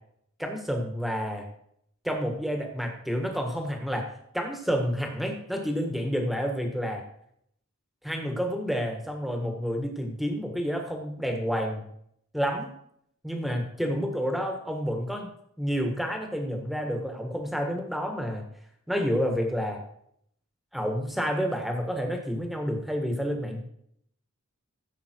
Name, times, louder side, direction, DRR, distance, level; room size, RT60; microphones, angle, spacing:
voice 1, 0.4-1.5 2.0-7.0 8.0-11.9 12.3-12.7 13.2-15.3 15.6-18.5 18.9-19.8 20.7-23.6, equal, ahead, 3 dB, 1.6 m, -29 dB
15.0 x 7.3 x 4.6 m, 0.70 s
head